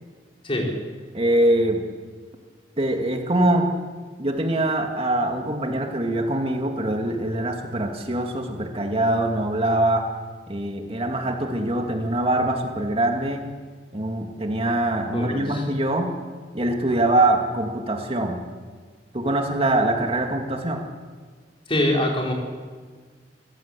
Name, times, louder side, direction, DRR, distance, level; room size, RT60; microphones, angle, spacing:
voice 1, 0.4-0.8 15.1-15.6 21.7-22.3, left 1 dB, 30° left, -1 dB, 5.2 m, -24 dB
voice 2, 1.1-1.8 2.8-3.7 4.2-10.1 10.5-13.4 13.9-16.1 16.5-18.4 19.1-20.8, right 1 dB, 35° right, 3 dB, 2.3 m, -23 dB
29.0 x 16.5 x 8.4 m, 1.5 s
head